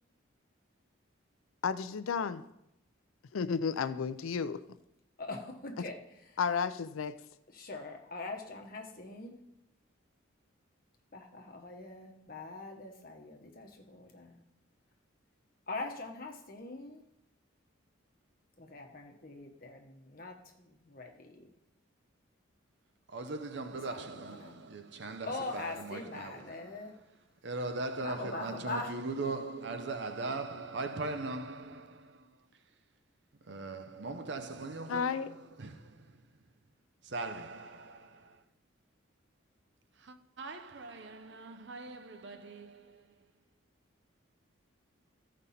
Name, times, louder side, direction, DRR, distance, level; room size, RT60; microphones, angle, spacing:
voice 1, 1.6-2.4 3.3-4.6 5.8-5.9 6.4-7.2 34.9-35.3, left 6 dB, 90° left, 0.5 m, -32 dB
voice 2, 5.2-6.4 7.5-9.4 11.1-14.4 15.7-17.0 18.6-21.5 23.7-24.6 25.3-26.9 28.0-28.9, left 2 dB, 45° left, 1.2 m, -43 dB
voice 3, 23.1-27.1 27.4-32.6 33.4-36.5 37.0-38.4 40.0-43.2, right 3 dB, 55° right, 0.7 m, -40 dB
14.0 x 5.3 x 4.2 m
head